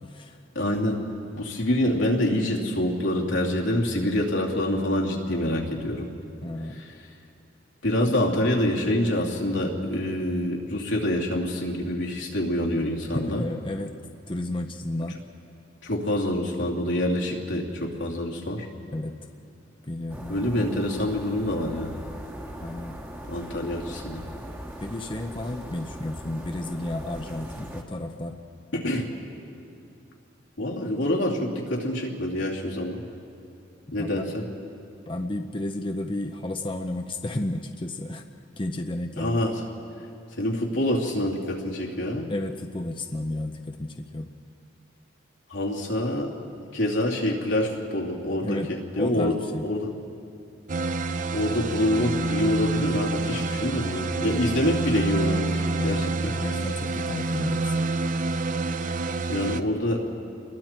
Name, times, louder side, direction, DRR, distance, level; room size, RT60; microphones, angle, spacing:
voice 1, 0.0-0.4 6.4-6.8 8.0-8.1 13.1-13.9 14.3-15.2 18.9-19.1 19.8-20.6 22.6-23.0 24.8-28.4 33.9-34.3 35.1-38.2 38.6-39.4 42.3-44.3 48.4-49.7 54.2-54.5 55.8-57.8, left 1 dB, 25° left, 4 dB, 0.7 m, -32 dB
voice 2, 0.5-1.0 1.3-6.1 6.8-6.9 7.8-13.4 15.8-18.7 20.3-22.0 23.3-24.2 28.7-29.1 30.6-33.0 33.9-34.4 39.2-39.5 40.4-42.3 45.5-46.3 46.7-48.6 49.0-49.4 49.6-49.9 51.3-56.3 59.3-60.0, left 1 dB, 85° left, -2 dB, 2.8 m, -26 dB
sound 1, 20.1-27.8, equal, 10° right, 1.5 m, -40 dB
sound 2, 50.7-59.6, right 3 dB, 40° right, 0.6 m, -27 dB
29.0 x 21.5 x 4.5 m, 2.6 s
head